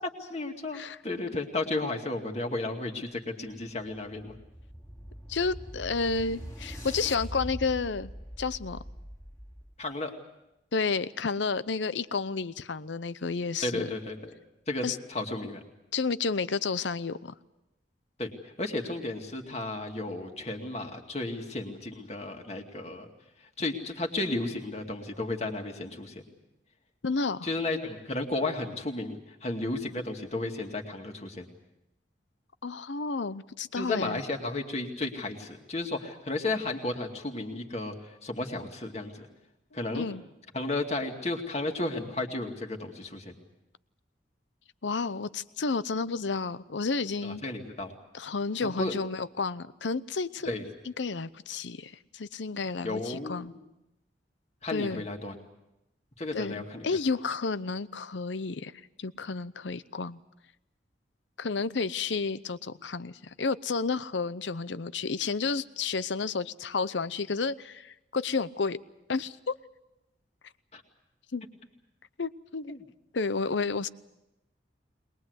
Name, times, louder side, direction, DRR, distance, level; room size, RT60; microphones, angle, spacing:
voice 1, 0.0-4.3 9.8-10.1 13.6-14.3 14.7-15.6 18.2-18.3 18.6-23.1 23.6-26.2 27.4-31.5 33.8-39.3 39.7-40.1 40.5-43.4 47.2-47.9 48.6-49.0 50.5-50.7 52.8-53.6 54.6-55.3 56.2-56.9 70.7-70.8 72.7-72.8, left 2 dB, 35° left, 3 dB, 2.3 m, -33 dB
sound 1, 3.9-9.8, equal, 20° left, 2.6 m, -42 dB
voice 2, 5.3-8.1 8.4-8.8 10.7-13.9 14.8-15.0 15.9-17.3 27.0-27.5 32.6-34.2 39.9-40.2 44.8-47.4 48.1-50.5 51.0-53.5 54.7-55.1 56.3-58.7 59.0-60.2 61.4-68.8 69.1-69.6 71.3-71.4 72.2-72.7 73.1-73.9, left 4 dB, 80° left, 16 dB, 0.7 m, -31 dB
22.0 x 21.5 x 8.1 m, 0.92 s
head